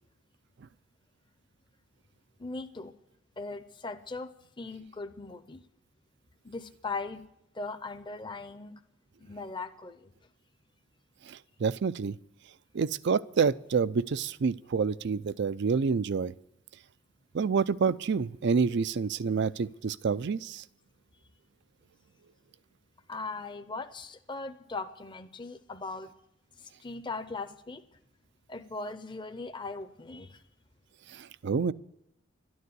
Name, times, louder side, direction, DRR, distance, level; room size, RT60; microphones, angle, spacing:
voice 1, 2.4-2.9 3.4-4.3 4.6-5.6 6.4-7.3 7.5-8.8 9.2-10.1 23.1-26.1 26.6-27.8 28.5-30.4, left 3 dB, 25° left, 8 dB, 0.7 m, -39 dB
voice 2, 11.3-12.2 12.7-16.3 17.3-20.6 31.1-31.7, right 5 dB, 65° right, 17 dB, 0.4 m, -28 dB
12.5 x 9.5 x 9.6 m, 0.81 s
head